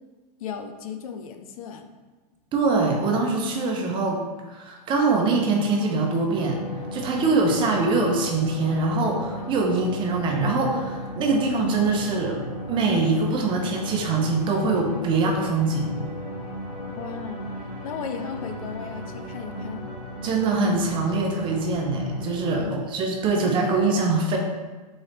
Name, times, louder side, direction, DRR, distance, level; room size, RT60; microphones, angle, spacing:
voice 1, 0.4-1.9 16.9-17.5 17.8-19.9 22.6-22.8, left 7 dB, 60° left, 6 dB, 0.5 m, -35 dB
voice 2, 2.5-4.2 4.5-6.6 6.9-12.4 12.7-15.9 20.2-24.4, right 3 dB, 25° right, 2 dB, 0.6 m, -23 dB
sound 1, 6.3-22.6, equal, 30° left, 1.4 m, -35 dB
4.0 x 3.2 x 3.9 m, 1.3 s
hypercardioid pair, 135°, 21 cm